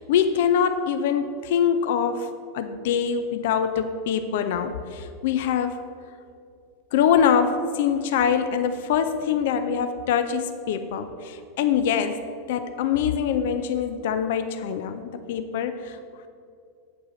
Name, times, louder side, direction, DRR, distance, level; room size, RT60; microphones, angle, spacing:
voice 1, 0.0-5.8 6.9-12.2 12.5-16.0, left 7 dB, 55° left, 9 dB, 0.5 m, -24 dB
8.5 x 4.7 x 7.5 m, 2.4 s
figure-of-eight pair, 85°, 0 cm